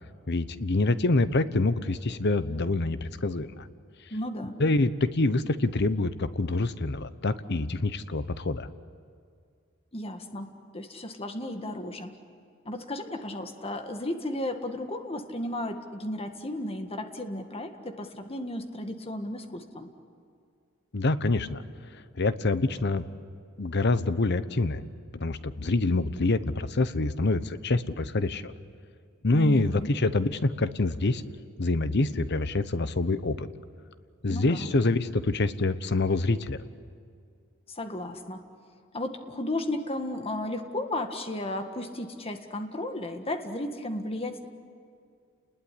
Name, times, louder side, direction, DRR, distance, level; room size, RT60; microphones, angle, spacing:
voice 1, 0.3-3.7 4.6-8.7 20.9-21.6 21.9-23.0 23.6-24.8 25.1-28.5 29.2-31.2 31.6-33.5 34.2-36.6, left 2 dB, 55° left, 13 dB, 1.0 m, -26 dB
voice 2, 4.1-4.6 9.9-12.1 12.7-19.9 29.3-29.9 34.3-34.7 37.7-38.4 38.9-44.5, left 1 dB, 30° left, 6 dB, 1.7 m, -34 dB
30.0 x 20.5 x 9.7 m, 2.3 s
head